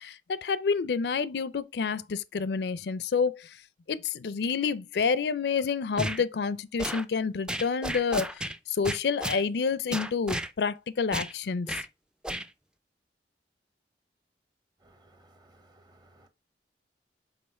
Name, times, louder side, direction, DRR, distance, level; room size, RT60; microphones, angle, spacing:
voice 1, 0.0-3.6 3.9-11.8, left 5 dB, 65° left, 0.4 m, -29 dB
sound 1, 6.0-6.2 6.8-7.0 7.5-8.6 8.8-9.4 9.9-10.5 11.1-11.3 11.7-11.9 12.2-12.5, right 1 dB, 5° right, 0.4 m, -32 dB
voice 2, 14.8-16.3, right 1 dB, 25° right, 1.0 m, -60 dB
5.5 x 4.1 x 4.3 m
head